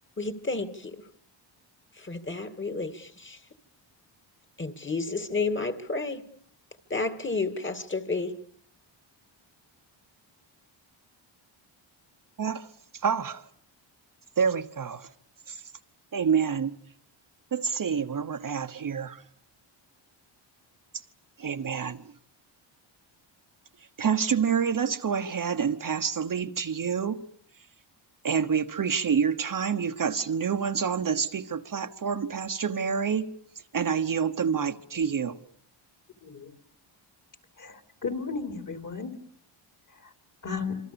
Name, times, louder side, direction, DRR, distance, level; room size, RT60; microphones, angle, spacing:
voice 1, 0.2-0.9 2.0-3.4 4.6-6.2 6.9-8.3, left 3 dB, 25° left, 2.3 m, -31 dB
voice 2, 13.0-13.4 14.4-15.1 15.5-15.6 16.1-16.7 17.5-19.2 21.4-22.0 24.0-27.3 28.2-33.4 33.7-35.4, right 6 dB, 40° right, 1.2 m, -27 dB
voice 3, 36.2-36.5 37.6-39.1 40.0-40.1 40.4-40.8, left 5 dB, 40° left, 3.7 m, -34 dB
27.0 x 24.5 x 7.0 m
cardioid pair, 110°, 48 cm